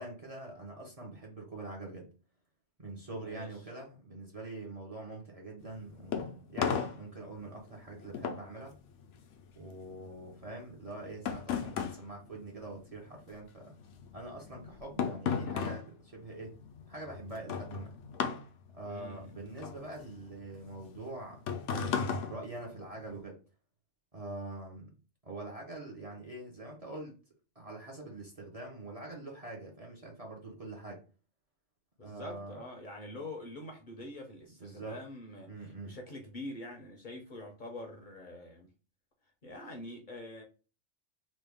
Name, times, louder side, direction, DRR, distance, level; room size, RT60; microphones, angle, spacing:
voice 1, 0.0-2.1 2.8-8.7 9.6-13.8 14.1-16.6 16.9-18.0 18.7-21.4 21.7-23.4 24.1-24.9 25.2-27.2 27.6-31.0 32.0-32.6 34.6-35.0 35.5-36.0, right 2 dB, 35° right, 0.7 m, -44 dB
voice 2, 3.2-3.5 18.8-19.3 32.0-35.5 35.8-38.7 39.4-40.4, left 1 dB, 50° left, 0.7 m, -45 dB
sound 1, 5.6-13.3 13.5-23.2, left 7 dB, 80° left, 0.9 m, -37 dB
3.1 x 2.2 x 3.4 m
omnidirectional pair, 1.3 m